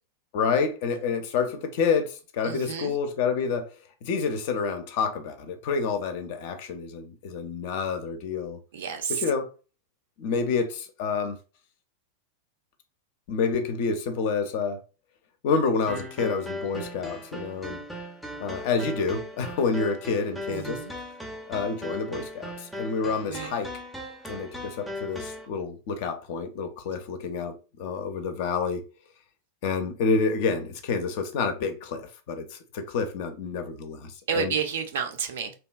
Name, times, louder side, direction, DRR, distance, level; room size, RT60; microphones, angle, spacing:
voice 1, 0.3-3.7 4.0-8.6 9.1-9.5 10.2-11.4 13.3-14.8 15.4-17.8 18.4-20.8 21.5-23.7 24.3-28.8 29.6-34.5, left 5 dB, 50° left, 0.4 m, -28 dB
voice 2, 2.4-3.0 8.7-9.2 20.5-20.9 23.3-23.6 34.3-35.5, right 7 dB, 60° right, 0.4 m, -30 dB
sound 1, 15.9-25.5, left 1 dB, ahead, 0.5 m, -38 dB
2.7 x 2.2 x 2.3 m
figure-of-eight pair, 90°, 0 cm